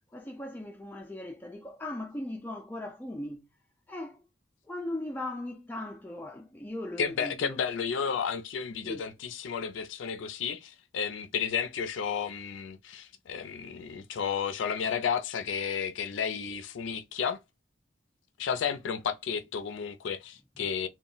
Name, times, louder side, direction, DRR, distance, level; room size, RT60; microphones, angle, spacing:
voice 1, 0.1-3.4 3.9-4.2 4.7-7.6 8.8-9.0, left 1 dB, 10° left, 0.3 m, -38 dB
voice 2, 7.0-17.4 18.4-20.9, left 7 dB, 90° left, 0.4 m, -32 dB
2.2 x 2.0 x 3.8 m
head